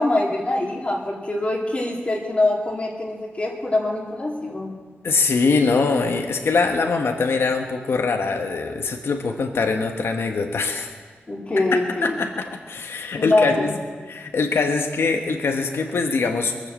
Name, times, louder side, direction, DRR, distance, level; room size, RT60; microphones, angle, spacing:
voice 1, 0.0-4.7 11.3-12.2 13.1-13.7, left 2 dB, 30° left, -3 dB, 2.3 m, -23 dB
voice 2, 5.0-10.9 12.0-13.8 14.1-16.5, left 4 dB, 80° left, 3 dB, 1.2 m, -23 dB
22.0 x 7.5 x 7.6 m, 1.5 s
wide cardioid pair, 95°, 4 cm